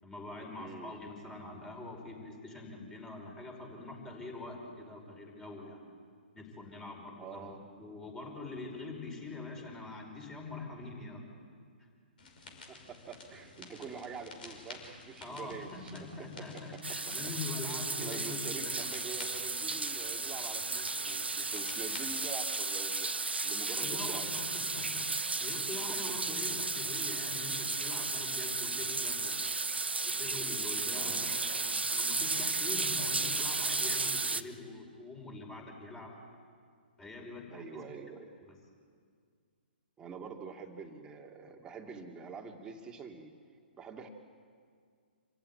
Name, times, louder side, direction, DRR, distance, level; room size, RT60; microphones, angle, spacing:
voice 1, 0.0-5.8 6.3-7.5 7.8-11.3 15.2-18.9 23.8-29.4 30.0-36.1 37.0-37.8 38.4-38.6, left 3 dB, 10° left, 1 dB, 5.4 m, -44 dB
voice 2, 0.6-0.9 7.2-7.6 12.7-15.9 16.3-16.8 18.0-23.1 23.4-24.3 26.5-26.6 30.9-31.7 37.5-38.3 40.0-43.3 43.7-44.1, right 5 dB, 15° right, 3 dB, 2.2 m, -46 dB
sound 1, 12.2-22.2, left 3 dB, 60° left, 5.9 m, -51 dB
sound 2, 16.8-34.4, right 3 dB, 85° right, 1.0 m, -34 dB
27.5 x 15.5 x 9.9 m, 2.1 s
figure-of-eight pair, 125°, 6 cm